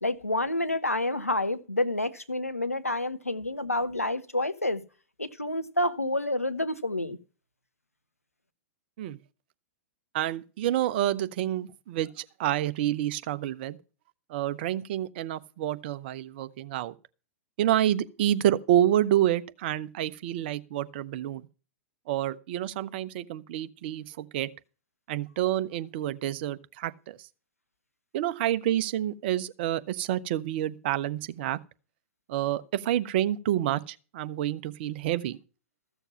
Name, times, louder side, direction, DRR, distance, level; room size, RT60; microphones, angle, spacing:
voice 1, 0.0-4.8 5.2-7.2, left 1 dB, 85° left, 0.9 m, -28 dB
voice 2, 10.1-13.8 14.3-16.9 17.6-21.5 22.1-24.5 25.1-27.3 28.1-31.6 32.3-35.4, right 12 dB, 45° right, 0.7 m, -28 dB
14.5 x 6.9 x 5.7 m
figure-of-eight pair, 100°, 8 cm